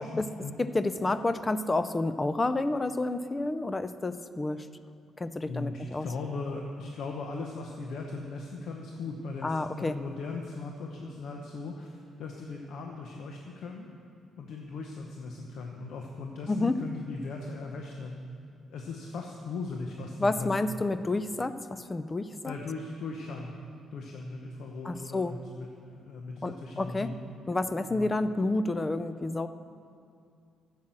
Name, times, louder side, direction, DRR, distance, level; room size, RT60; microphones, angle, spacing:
voice 1, 0.0-0.5 5.5-13.9 14.4-18.2 18.7-20.7 22.4-23.6 23.9-27.2 27.9-28.1, left 3 dB, 75° left, 1 dB, 1.0 m, -38 dB
voice 2, 0.6-4.7 5.2-6.1 9.4-10.0 16.5-16.8 20.2-22.5 24.8-25.3 26.4-27.1 27.5-29.5, left 2 dB, 25° left, 12 dB, 0.5 m, -29 dB
10.5 x 7.5 x 7.5 m, 2.4 s
cardioid pair, 90°, 0 cm